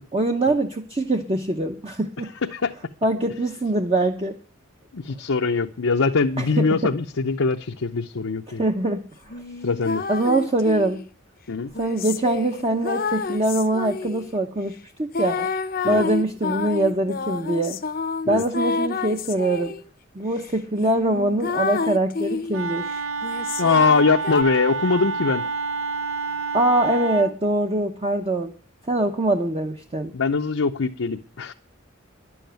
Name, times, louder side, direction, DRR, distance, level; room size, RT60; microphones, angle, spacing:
voice 1, 0.1-2.3 3.0-4.4 6.4-6.9 8.5-9.1 10.1-11.1 11.8-15.5 15.8-17.8 18.3-19.7 20.1-22.8 26.5-28.5 28.9-30.1, right 1 dB, 30° right, 0.7 m, -23 dB
voice 2, 2.4-2.7 4.9-8.6 9.6-10.0 11.5-11.7 15.8-16.0 18.3-18.4 23.6-25.4 30.1-31.5, left 4 dB, 80° left, 0.7 m, -22 dB
sound 1, 9.3-11.0 11.7-14.3 15.1-19.8 20.4-20.5 20.8-22.6 23.2-24.4, left 4 dB, 45° left, 0.7 m, -29 dB
Wind instrument woodwind instrument, 22.5-27.3, right 4 dB, 85° right, 0.7 m, -28 dB
11.0 x 7.2 x 9.2 m
head